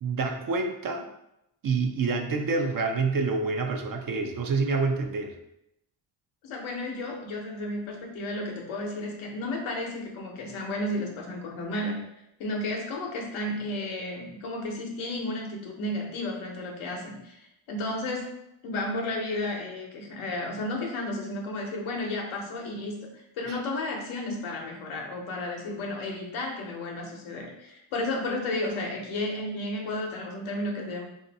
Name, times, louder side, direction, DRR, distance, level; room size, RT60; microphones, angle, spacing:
voice 1, 0.0-1.0 1.6-5.3 23.4-23.6, right 4 dB, 45° right, 4 dB, 0.6 m, -27 dB
voice 2, 6.4-12.0 12.4-18.4 18.6-31.0, left 1 dB, 85° left, 0 dB, 0.9 m, -33 dB
2.6 x 2.5 x 4.0 m, 0.82 s
supercardioid pair, 60°, 48 cm